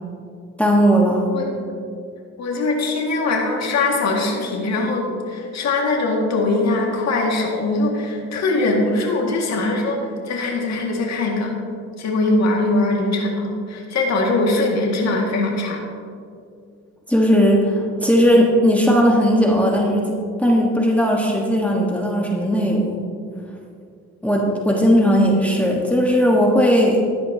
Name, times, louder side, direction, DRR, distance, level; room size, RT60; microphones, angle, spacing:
voice 1, 0.6-1.2 17.1-20.1 20.4-23.0 24.2-27.1, equal, 5° left, -2 dB, 1.4 m, -17 dB
voice 2, 2.4-11.5 12.0-15.8, left 2 dB, 60° left, -1 dB, 2.0 m, -21 dB
14.5 x 10.0 x 2.8 m, 2.4 s
cardioid pair, 90°, 30 cm